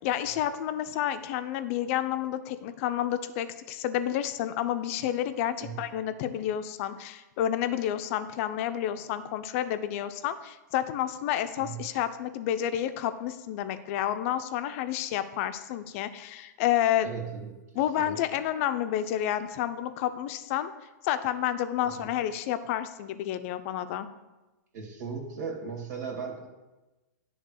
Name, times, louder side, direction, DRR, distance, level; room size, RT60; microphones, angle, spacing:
voice 1, 0.0-17.1 17.7-20.7 21.0-24.1, left 11 dB, 45° left, 11 dB, 0.6 m, -30 dB
voice 2, 17.0-17.5 18.0-18.2 21.8-22.1 24.7-26.5, right 5 dB, 65° right, 1 dB, 2.4 m, -37 dB
10.5 x 3.6 x 6.5 m, 1.1 s
hypercardioid pair, 125°, 10 cm